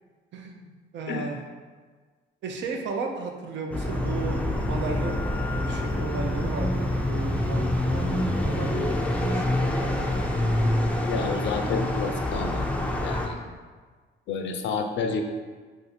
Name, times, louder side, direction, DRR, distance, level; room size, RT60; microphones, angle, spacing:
voice 1, 0.3-0.7 0.9-1.4 2.4-5.2 5.6-9.0 9.3-10.1, right 4 dB, 65° right, 3 dB, 0.5 m, -34 dB
sound 1, 3.7-13.3, left 1 dB, 5° left, 0.3 m, -26 dB
voice 2, 11.1-12.6 13.0-13.4 14.3-15.2, left 4 dB, 70° left, 5 dB, 0.4 m, -29 dB
2.5 x 2.5 x 4.1 m, 1.5 s
cardioid pair, 90°, 20 cm